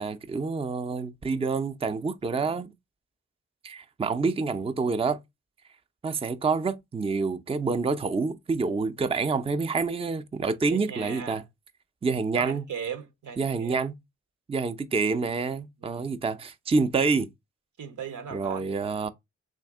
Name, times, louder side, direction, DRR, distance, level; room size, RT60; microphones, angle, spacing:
voice 1, 0.0-2.7 3.6-5.2 6.0-11.4 12.0-12.6 13.4-13.9 14.5-17.3 18.3-19.1, right 4 dB, 20° right, 0.4 m, -27 dB
voice 2, 10.7-11.4 12.3-13.8 15.8-16.2 17.8-18.7, right 7 dB, 80° right, 0.8 m, -38 dB
3.5 x 2.6 x 3.5 m
cardioid pair, 50°, 30 cm